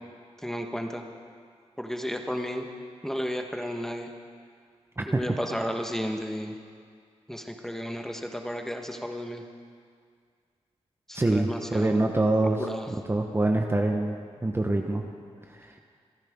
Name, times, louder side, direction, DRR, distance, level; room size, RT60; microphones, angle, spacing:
voice 1, 0.4-1.0 1.8-2.7 3.0-4.1 5.0-6.5 7.3-9.4 11.1-12.1 12.6-12.9, equal, 5° left, 4 dB, 1.3 m, -33 dB
voice 2, 11.1-12.6 12.9-15.0 15.6-15.7, right 2 dB, 20° right, 3 dB, 1.1 m, -25 dB
26.5 x 10.0 x 3.7 m, 2.1 s
cardioid pair, 75°, 12 cm